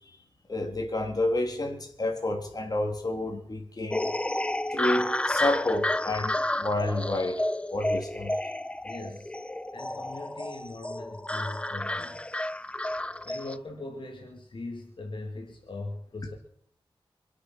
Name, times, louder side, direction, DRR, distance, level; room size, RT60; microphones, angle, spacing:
voice 1, 0.5-4.1 4.7-8.3, left 1 dB, 40° left, 2 dB, 3.2 m, -30 dB
sound 1, 3.9-13.6, left 1 dB, 10° left, 0.5 m, -31 dB
voice 2, 8.8-9.3 9.7-12.2 13.2-16.3, left 2 dB, 60° left, 0 dB, 2.7 m, -40 dB
25.0 x 8.5 x 6.3 m, 0.69 s
wide cardioid pair, 115°, 10 cm